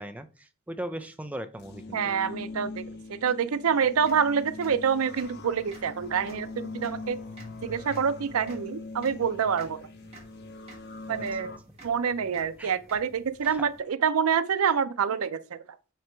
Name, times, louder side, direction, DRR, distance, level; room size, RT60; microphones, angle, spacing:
voice 1, 0.0-2.0 11.1-11.2 12.6-12.7, right 1 dB, 5° right, 0.4 m, -38 dB
sound 1, 1.6-11.6, left 3 dB, 50° left, 0.7 m, -42 dB
voice 2, 1.9-2.8 3.1-7.2 7.6-9.8 11.1-11.6 11.8-15.6, right 7 dB, 90° right, 0.5 m, -27 dB
sound 2, 3.7-13.8, right 1 dB, 30° right, 1.8 m, -52 dB
7.8 x 2.9 x 4.4 m
head